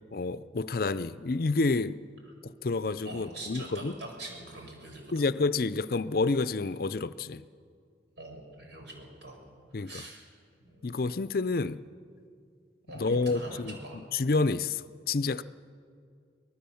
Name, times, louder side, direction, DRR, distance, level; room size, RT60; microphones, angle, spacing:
voice 1, 0.1-2.0 2.4-3.9 5.1-7.4 9.7-10.0 10.8-11.8 12.9-15.4, left 3 dB, 50° left, 15 dB, 0.5 m, -29 dB
voice 2, 3.0-5.3 8.2-9.4 9.8-10.3 10.6-11.1 12.9-14.0, right 1 dB, 75° right, 1 dB, 5.7 m, -44 dB
24.5 x 19.0 x 7.1 m, 2.3 s
head